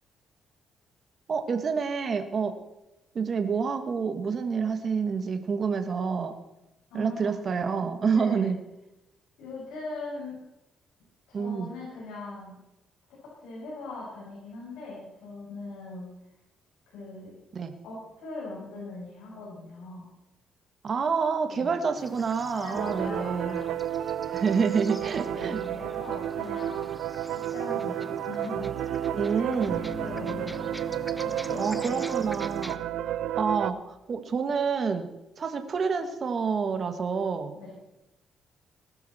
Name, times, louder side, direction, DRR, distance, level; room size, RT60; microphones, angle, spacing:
voice 1, 1.3-2.5 3.1-6.3 6.9-8.6 11.3-11.7 17.5-17.7 20.8-23.6 24.3-25.6 29.1-29.8 31.6-32.8 33.0-35.1 35.4-37.5, right 5 dB, 45° right, 6 dB, 1.7 m, -28 dB
voice 2, 6.9-7.3 8.1-8.5 9.4-10.4 11.3-12.6 13.2-16.1 16.9-17.3 17.8-20.1 21.5-21.7 22.5-23.7 25.1-26.9 27.3-29.1 29.3-30.7 31.2-32.2 32.7-32.9 37.5-37.7, left 2 dB, 90° left, -6 dB, 6.8 m, -40 dB
sound 1, 22.0-32.8, equal, ahead, 1.0 m, -45 dB
sound 2, 22.7-33.7, right 11 dB, 80° right, 0.6 m, -31 dB
Bass guitar, 29.7-33.4, right 2 dB, 25° right, 3.1 m, -42 dB
20.0 x 13.0 x 4.4 m, 0.93 s
cardioid pair, 90°, 0 cm